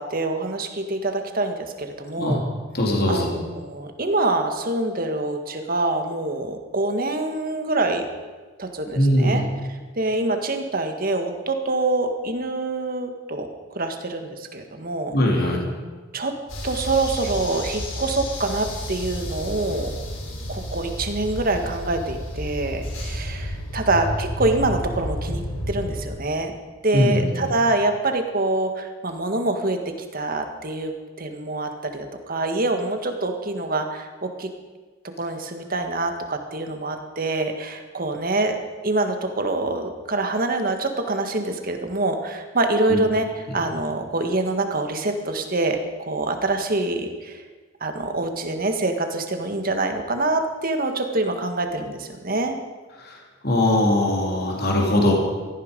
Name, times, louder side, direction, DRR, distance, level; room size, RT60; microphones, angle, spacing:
voice 1, 0.0-2.4 3.1-3.2 3.5-8.0 8.6-9.4 10.0-13.5 13.7-15.1 16.1-16.3 16.6-19.9 20.5-26.5 26.8-34.5 35.2-38.6 38.8-47.4 47.8-52.6, right 2 dB, 45° right, 5 dB, 1.7 m, -25 dB
voice 2, 2.7-3.3 8.9-9.4 15.1-15.7 26.9-27.4 42.9-43.0 43.5-43.6 53.0-53.2 53.4-55.1, left 1 dB, 50° left, -1 dB, 3.3 m, -21 dB
sound 1, 16.5-26.0, equal, 90° left, 4.7 m, -31 dB
17.5 x 14.0 x 5.4 m, 1.4 s
head